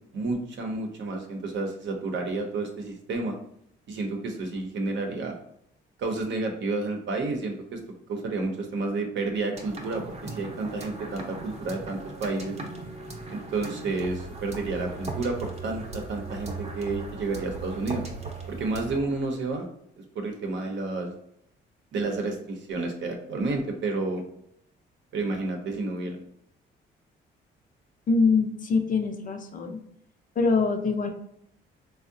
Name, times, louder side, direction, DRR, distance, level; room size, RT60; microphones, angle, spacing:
voice 1, 0.1-3.3 3.9-5.3 6.0-7.8 8.1-12.6 13.3-18.0 18.5-19.6 20.1-21.1 21.9-24.2 25.1-26.2, right 3 dB, 65° right, 3 dB, 0.7 m, -30 dB
sound 1, 9.5-19.0, right 3 dB, 35° right, 0.7 m, -38 dB
voice 2, 28.1-29.8 30.4-31.1, left 4 dB, 40° left, 5 dB, 0.5 m, -24 dB
3.5 x 2.0 x 2.6 m, 0.72 s
cardioid pair, 90°, 20 cm